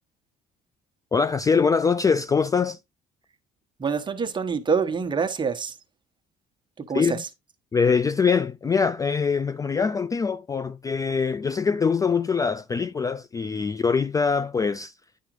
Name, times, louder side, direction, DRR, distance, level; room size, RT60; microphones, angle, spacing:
voice 1, 1.1-2.8 6.9-7.2 7.7-14.9, left 5 dB, 20° left, 0.3 m, -23 dB
voice 2, 3.8-5.8 6.8-7.3, right 5 dB, 25° right, 1.2 m, -26 dB
10.5 x 5.0 x 3.1 m
cardioid pair, 110°, 17 cm